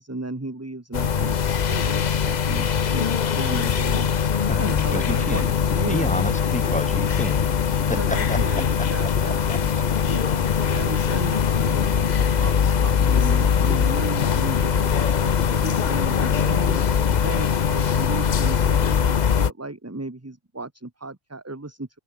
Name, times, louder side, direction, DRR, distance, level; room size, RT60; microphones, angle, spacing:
voice 1, 0.0-4.1 4.6-6.1 7.0-7.1 8.0-9.7 10.0-16.8 17.2-21.9, right 2 dB, 15° right, 1.2 m, -35 dB
sound 1, 0.9-19.5, left 7 dB, 50° left, 0.8 m, -22 dB
sound 2, 4.6-19.2, left 8 dB, 85° left, 1.2 m, -35 dB
voice 2, 4.9-5.6 5.9-8.4 8.8-8.9 9.2-9.6, left 1 dB, 5° left, 2.1 m, -30 dB
open air
omnidirectional pair, 1.0 m